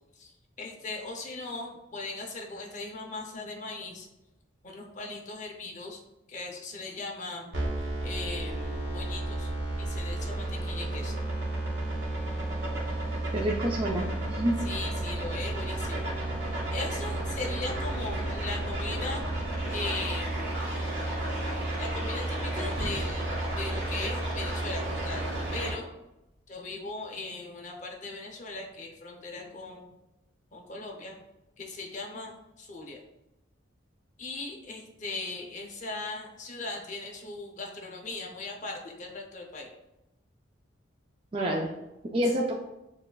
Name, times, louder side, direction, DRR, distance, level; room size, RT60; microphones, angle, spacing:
voice 1, 0.6-4.1 4.6-6.0 6.3-9.5 9.8-11.2 14.6-16.1 16.7-19.2 19.7-20.6 21.8-25.9 26.5-29.9 30.5-31.2 31.6-33.0 34.2-39.7, left 3 dB, 40° left, 1 dB, 0.6 m, -39 dB
sound 1, 7.5-25.7, right 1 dB, 60° right, 1.2 m, -32 dB
voice 2, 13.3-14.6 41.3-41.7 42.0-42.5, right 1 dB, 25° right, -2 dB, 0.3 m, -28 dB
sound 2, 22.6-26.5, equal, 10° right, 1.3 m, -46 dB
6.6 x 2.4 x 2.3 m, 0.93 s
head